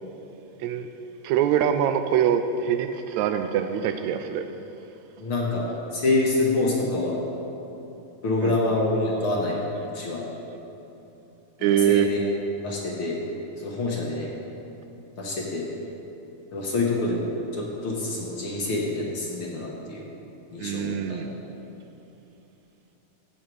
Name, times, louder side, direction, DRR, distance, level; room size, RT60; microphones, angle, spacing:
voice 1, 1.2-4.5 8.4-8.6 11.6-12.1 20.6-21.3, right 9 dB, 80° right, 8 dB, 1.8 m, -24 dB
voice 2, 5.2-7.2 8.2-9.6 9.8-10.2 11.9-12.2 12.6-13.2 13.6-14.3 15.2-15.7 16.5-20.0 20.5-21.2, left 2 dB, 55° left, -3 dB, 1.9 m, -26 dB
13.5 x 8.3 x 4.7 m, 3.0 s
omnidirectional pair, 3.3 m